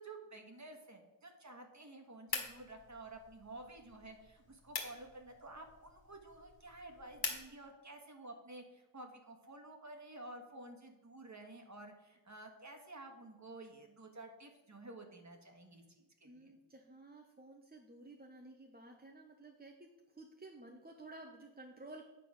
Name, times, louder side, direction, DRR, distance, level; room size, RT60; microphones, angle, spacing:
voice 1, 0.0-16.5, right 2 dB, 35° right, 4 dB, 1.5 m, -52 dB
sound 1, 2.3-7.5, left 4 dB, 50° left, 1.7 m, -45 dB
voice 2, 16.2-22.0, right 2 dB, 20° right, 2 dB, 0.8 m, -54 dB
8.9 x 4.5 x 6.3 m, 1.1 s
wide cardioid pair, 90°, 48 cm